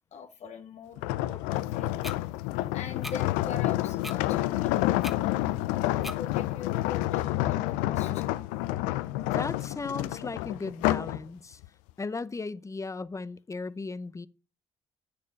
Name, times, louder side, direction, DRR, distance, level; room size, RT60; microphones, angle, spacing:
voice 1, 0.1-2.0 2.7-5.0 6.2-8.3, left 7 dB, 60° left, 1.1 m, -42 dB
sound 1, 1.0-11.2 11.6-11.9, left 16 dB, 85° left, 0.4 m, -29 dB
sound 2, 2.0-2.2 3.0-3.2 4.0-4.2 5.0-5.2 6.0-6.2, equal, ahead, 1.3 m, -38 dB
voice 2, 9.2-11.6 12.0-14.3, left 3 dB, 25° left, 0.7 m, -36 dB
9.4 x 6.8 x 5.2 m
hypercardioid pair, 45°, 13 cm